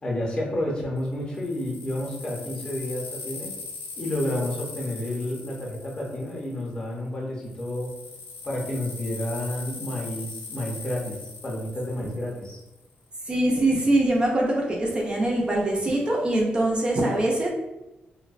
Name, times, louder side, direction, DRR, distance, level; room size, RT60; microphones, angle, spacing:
voice 1, 0.0-3.5 4.0-7.9 8.4-12.6, left 1 dB, 25° left, -3 dB, 0.6 m, -30 dB
sound 1, 1.0-6.9 7.4-12.8, left 4 dB, 80° left, 0.4 m, -40 dB
voice 2, 13.3-17.5, right 1 dB, 25° right, -2 dB, 0.4 m, -23 dB
2.6 x 2.0 x 2.4 m, 0.97 s
wide cardioid pair, 165°, 4 cm